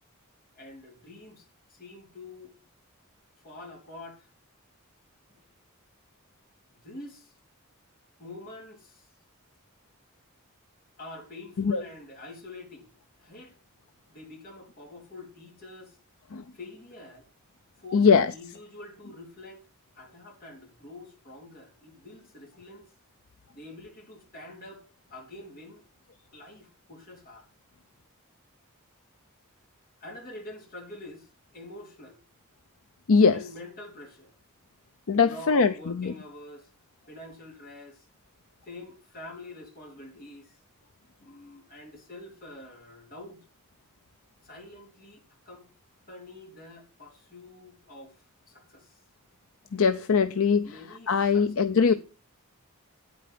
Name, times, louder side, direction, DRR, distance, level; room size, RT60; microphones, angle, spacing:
voice 1, 0.5-2.5 3.4-4.3 5.3-5.4 6.6-7.3 8.2-9.1 11.0-13.6 14.1-16.0 16.5-17.3 17.8-19.7 20.0-22.9 23.5-25.9 26.3-27.5 30.0-32.2 33.3-34.3 35.2-36.7 37.1-38.1 38.6-40.6 41.2-43.4 44.4-45.7 46.1-48.9 50.6-51.4 51.9-52.0, left 2 dB, 40° left, 3.8 m, -46 dB
voice 2, 17.9-18.3 33.1-33.4 35.1-36.1 49.7-50.7 51.1-51.9, left 5 dB, 70° left, 0.6 m, -21 dB
9.5 x 8.6 x 6.0 m
head